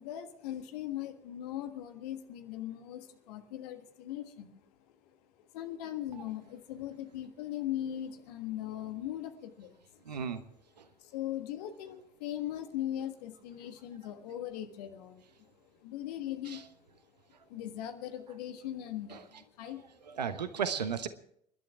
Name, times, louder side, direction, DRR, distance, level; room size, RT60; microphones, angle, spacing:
voice 1, 0.0-4.6 5.4-10.2 11.0-15.5 15.8-16.9 17.4-20.2, left 12 dB, 70° left, 7 dB, 1.6 m, -40 dB
voice 2, 10.0-10.4 10.8-10.9 16.5-16.6 19.1-19.2 20.1-21.1, right 7 dB, 85° right, 11 dB, 1.2 m, -34 dB
28.5 x 11.5 x 3.5 m, 0.70 s
figure-of-eight pair, 65°, 21 cm